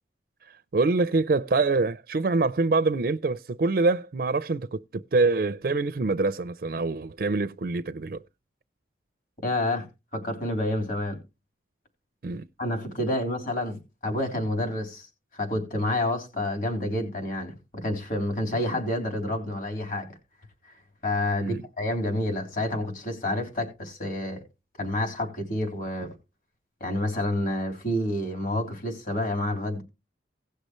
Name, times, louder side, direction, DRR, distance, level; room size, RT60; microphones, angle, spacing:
voice 1, 0.7-8.2 12.2-12.4 21.4-21.6, right 3 dB, 55° right, 0.4 m, -25 dB
voice 2, 9.4-9.9 10.1-11.2 12.6-15.1 15.3-20.1 20.6-20.7 21.0-24.4 24.8-26.1 26.8-29.8, left 1 dB, 50° left, 3.4 m, -29 dB
17.5 x 6.5 x 3.1 m
head